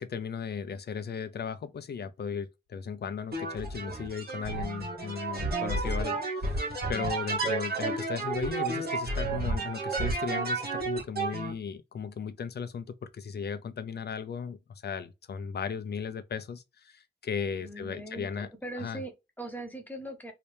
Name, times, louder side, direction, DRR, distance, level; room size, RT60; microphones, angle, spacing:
voice 1, 0.0-14.6 14.8-18.5 18.8-19.0, left 6 dB, 70° left, 0.5 m, -36 dB
sound 1, 3.3-11.5, right 3 dB, 65° right, 1.5 m, -31 dB
voice 2, 17.6-20.3, right 1 dB, 10° left, 0.9 m, -40 dB
3.2 x 2.8 x 3.3 m
wide cardioid pair, 160°, 18 cm